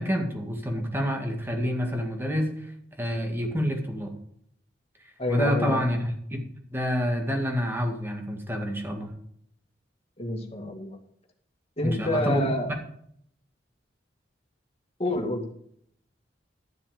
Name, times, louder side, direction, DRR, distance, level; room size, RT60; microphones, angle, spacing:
voice 1, 0.0-2.5 3.0-4.1 5.3-6.4 6.7-9.1 11.8-12.5, equal, 15° right, 2 dB, 2.1 m, -28 dB
voice 2, 5.2-5.8 10.2-11.0 11.8-12.7 15.0-15.5, left 1 dB, 35° left, 2 dB, 2.1 m, -28 dB
12.5 x 7.2 x 5.1 m, 0.67 s
head